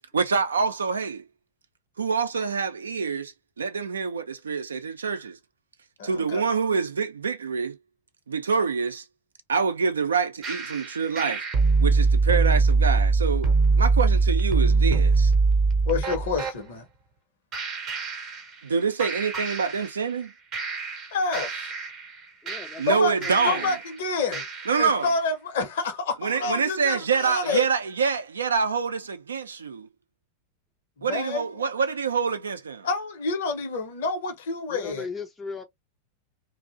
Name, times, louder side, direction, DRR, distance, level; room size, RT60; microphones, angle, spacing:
voice 1, 0.1-1.2 2.0-5.4 6.0-7.8 8.3-9.0 9.5-11.4 11.8-15.3 18.6-20.3 22.8-23.7 24.7-25.1 26.2-29.9 31.0-32.9, right 5 dB, 70° right, 0.4 m, -26 dB
voice 2, 6.0-6.4 15.9-16.9 21.1-21.7 22.8-27.6 31.0-31.4 32.8-35.1, left 4 dB, 55° left, 0.7 m, -28 dB
sound 1, 10.4-16.6 17.5-18.7 19.0-20.2 20.5-23.9 24.3-25.0, right 4 dB, 30° right, 0.7 m, -23 dB
voice 3, 22.4-23.7 27.4-27.6 34.7-35.6, left 4 dB, 10° left, 0.4 m, -38 dB
2.5 x 2.0 x 2.5 m
figure-of-eight pair, 90°, 0 cm